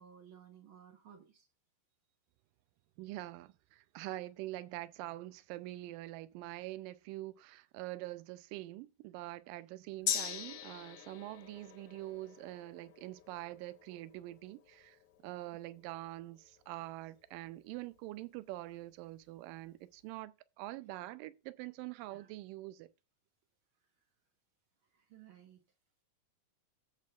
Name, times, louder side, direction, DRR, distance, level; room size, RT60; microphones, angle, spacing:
voice 1, 0.0-1.5 22.1-22.3 24.9-25.6, right 9 dB, 65° right, 1.3 m, -57 dB
voice 2, 3.0-15.0 15.2-20.3 20.6-22.9, right 17 dB, 85° right, 2.2 m, -45 dB
Gong, 10.1-17.8 18.2-18.3, left 9 dB, 80° left, 2.8 m, -43 dB
15.5 x 7.4 x 2.4 m
omnidirectional pair, 3.9 m